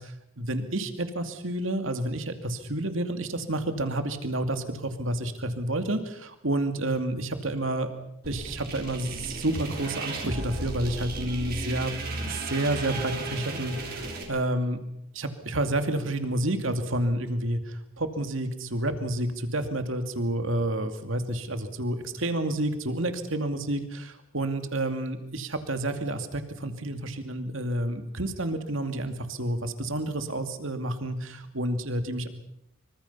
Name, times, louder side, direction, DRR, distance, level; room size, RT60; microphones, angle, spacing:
voice 1, 0.0-7.9 8.2-14.8 15.1-32.3, right 1 dB, 75° right, 7 dB, 2.4 m, -30 dB
sound 1, 8.2-14.2, right 2 dB, 50° right, 6.0 m, -35 dB
26.0 x 25.0 x 5.6 m, 0.78 s
head